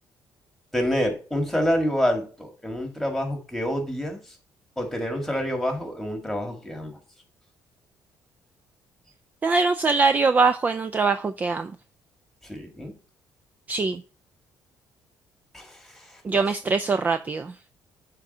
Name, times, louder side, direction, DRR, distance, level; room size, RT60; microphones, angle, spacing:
voice 1, 0.7-4.4 4.8-7.0 12.4-12.9 15.5-16.4, equal, 5° left, 1.8 m, -27 dB
voice 2, 9.4-11.7 13.7-14.0 16.2-17.5, right 4 dB, 25° right, 0.4 m, -22 dB
7.4 x 3.7 x 5.5 m
cardioid pair, 120°, 7 cm